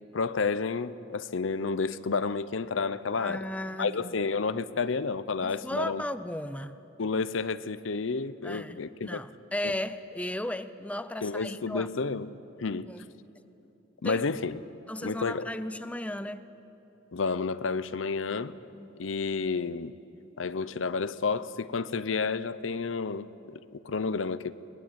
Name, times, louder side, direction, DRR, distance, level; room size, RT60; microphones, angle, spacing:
voice 1, 0.1-3.4 3.8-6.0 7.0-9.2 9.6-9.7 11.2-12.3 12.6-12.9 14.0-14.6 15.0-15.5 17.1-18.6 19.0-19.9 20.4-24.6, left 4 dB, 80° left, 0.7 m, -30 dB
voice 2, 3.1-4.1 5.4-6.8 8.4-11.9 12.9-13.0 14.0-14.2 14.9-16.5 18.7-18.9, left 1 dB, 5° left, 0.6 m, -35 dB
22.5 x 20.5 x 8.8 m
head